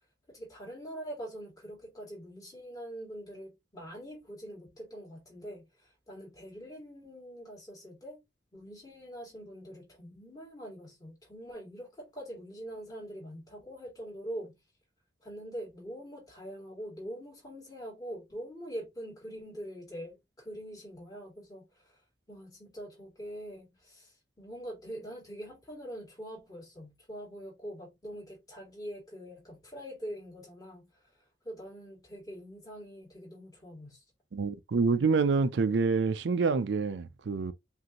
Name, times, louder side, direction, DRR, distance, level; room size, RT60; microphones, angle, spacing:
voice 1, 0.3-8.2 8.5-14.6 15.2-22.0 22.3-31.1 31.4-34.0, equal, 20° left, 2.3 m, -44 dB
voice 2, 34.3-37.5, right 4 dB, 75° right, 0.4 m, -27 dB
5.1 x 2.6 x 2.9 m
head